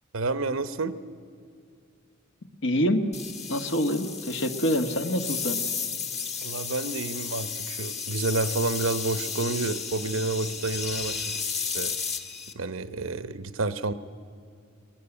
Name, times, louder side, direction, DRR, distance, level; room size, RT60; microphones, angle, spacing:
voice 1, 0.1-1.0 6.4-11.9 12.5-13.9, right 3 dB, 85° right, 12 dB, 0.9 m, -29 dB
voice 2, 2.6-3.0 3.5-5.6, equal, 65° left, 6 dB, 1.5 m, -26 dB
sound 1, 3.1-12.5, left 6 dB, 35° left, 1.5 m, -33 dB
22.0 x 20.0 x 9.9 m, 2.4 s
head